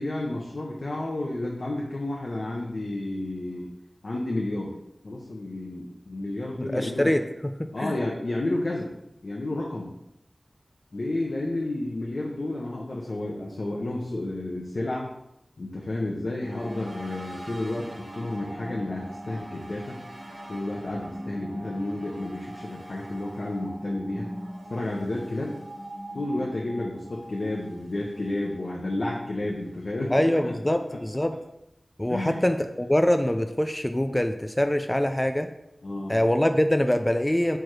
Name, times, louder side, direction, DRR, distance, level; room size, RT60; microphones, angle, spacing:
voice 1, 0.0-3.7 4.0-4.8 5.0-7.2 7.7-8.9 9.2-9.9 10.9-15.1 15.6-20.0 20.5-24.3 24.7-25.6 26.1-30.5 30.9-31.0 32.1-32.4 35.8-36.2, left 2 dB, 75° left, -2 dB, 0.8 m, -31 dB
voice 2, 6.6-8.0 30.1-31.4 32.0-35.5 36.1-37.6, left 1 dB, 15° left, 7 dB, 0.4 m, -24 dB
sound 1, 16.4-29.8, equal, 85° right, 1.6 m, -41 dB
4.6 x 4.6 x 4.7 m, 0.85 s
wide cardioid pair, 75°, 0 cm